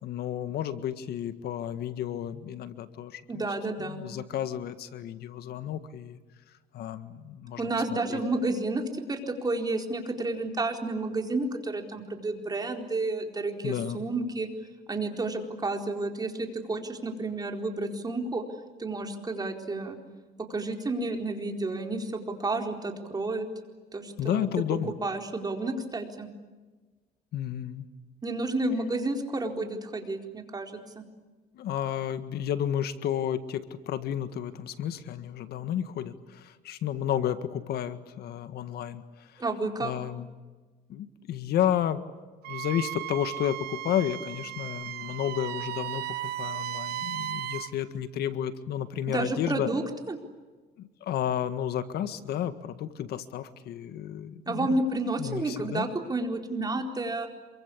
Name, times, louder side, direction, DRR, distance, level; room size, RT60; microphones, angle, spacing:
voice 1, 0.0-3.4 3.8-6.2 6.7-8.2 13.6-14.0 24.2-24.9 27.3-27.9 31.5-39.4 39.8-40.3 40.9-42.0 42.5-46.0 46.4-49.7 50.8-54.8 55.2-55.9, left 10 dB, 70° left, 11 dB, 1.8 m, -32 dB
voice 2, 3.3-4.0 7.6-14.5 14.9-18.4 18.8-20.0 20.4-23.5 23.9-24.5 25.0-26.3 28.2-31.0 39.4-39.9 49.1-50.2 54.5-57.3, right 2 dB, 25° right, 4 dB, 4.3 m, -31 dB
Wind instrument woodwind instrument, 42.4-47.7, right 13 dB, 70° right, 1.0 m, -35 dB
27.5 x 24.0 x 8.6 m, 1.3 s
cardioid pair, 110°, 17 cm